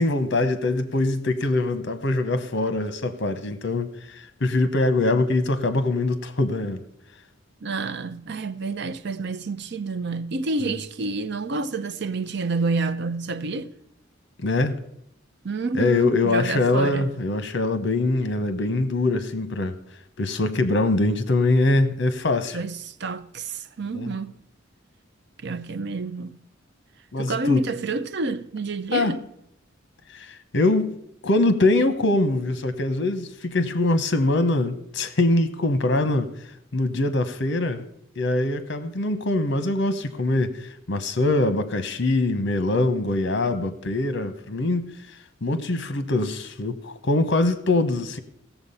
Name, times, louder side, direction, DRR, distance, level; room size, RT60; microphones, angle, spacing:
voice 1, 0.0-6.8 10.6-10.8 14.4-14.8 15.8-19.7 20.2-22.6 23.9-24.1 27.1-27.6 28.9-29.2 30.1-30.9 31.2-36.3 36.7-37.8 38.2-44.9 45.4-48.2, left 2 dB, 65° left, 1.0 m, -23 dB
voice 2, 7.6-13.7 15.4-17.1 22.5-24.3 25.4-26.4 27.2-29.2, right 3 dB, 60° right, 0.6 m, -29 dB
16.0 x 7.1 x 5.6 m
head